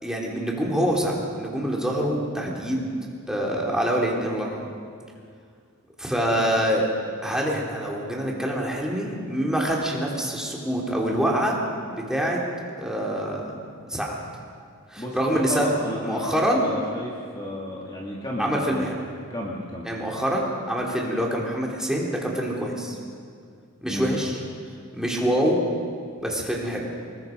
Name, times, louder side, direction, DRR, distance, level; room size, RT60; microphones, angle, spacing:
voice 1, 0.0-2.9 3.3-4.7 6.0-6.9 7.2-11.6 11.9-12.4 12.8-13.5 13.9-14.2 14.9-15.7 16.0-16.6 18.4-19.0 19.8-23.0 23.8-24.4 24.9-25.6 26.2-26.9, equal, 5° right, -3 dB, 3.4 m, -25 dB
voice 2, 15.0-18.9 19.3-19.9 23.9-24.1, left 1 dB, 20° left, -3 dB, 2.3 m, -32 dB
26.5 x 21.0 x 5.3 m, 2.2 s
head